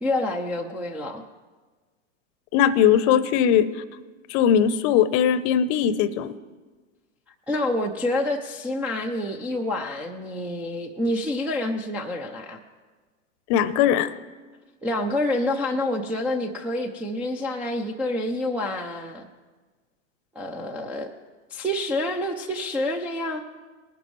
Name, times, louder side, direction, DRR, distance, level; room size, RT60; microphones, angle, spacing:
voice 1, 0.0-1.2 7.5-12.6 14.8-19.3 20.4-21.1 21.5-23.4, left 1 dB, 5° right, -3 dB, 0.3 m, -27 dB
voice 2, 2.5-3.7 4.3-6.3 13.5-14.1, left 9 dB, 40° left, 16 dB, 0.7 m, -20 dB
20.0 x 11.5 x 3.1 m, 1.3 s
hypercardioid pair, 110°, 39 cm